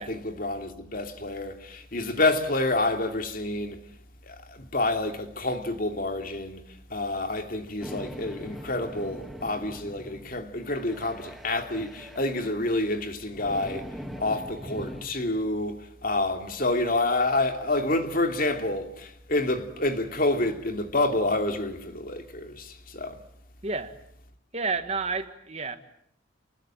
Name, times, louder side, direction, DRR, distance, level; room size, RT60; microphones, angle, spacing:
voice 1, 0.0-3.8 4.2-6.6 6.9-13.9 14.2-23.2, left 2 dB, 45° left, 2.7 m, -28 dB
sound 1, 7.8-15.1, equal, ahead, 2.1 m, -42 dB
voice 2, 23.6-23.9 24.5-25.8, right 4 dB, 30° right, 1.7 m, -30 dB
30.0 x 21.0 x 9.0 m
head